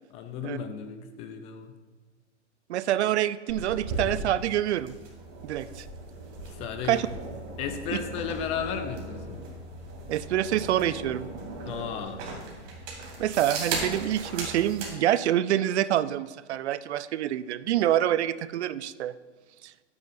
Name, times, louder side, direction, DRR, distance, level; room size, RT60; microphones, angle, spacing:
voice 1, 0.1-1.7 6.5-7.1 7.6-9.4 11.6-12.3, left 7 dB, 20° left, 8 dB, 0.4 m, -34 dB
voice 2, 2.7-5.0 5.4-5.9 6.9-7.1 7.9-8.0 10.1-11.3 13.2-19.1, right 12 dB, 65° right, 16 dB, 0.5 m, -26 dB
sound 1, 3.5-14.9, right 2 dB, 40° right, 2.8 m, -37 dB
12.5 x 9.5 x 2.6 m, 1.3 s
hypercardioid pair, 130°, 36 cm